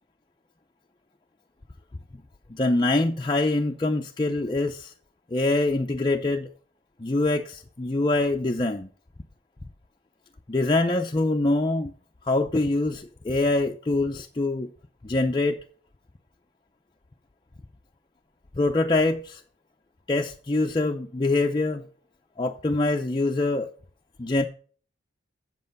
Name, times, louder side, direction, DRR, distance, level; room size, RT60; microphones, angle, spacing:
voice 1, 2.5-4.9 5.3-6.5 7.0-8.9 10.5-11.9 12.2-14.7 15.0-15.6 18.6-19.4 20.1-21.8 22.4-23.7 24.2-24.5, left 2 dB, 25° left, 0.5 m, -24 dB
7.9 x 7.5 x 5.3 m
head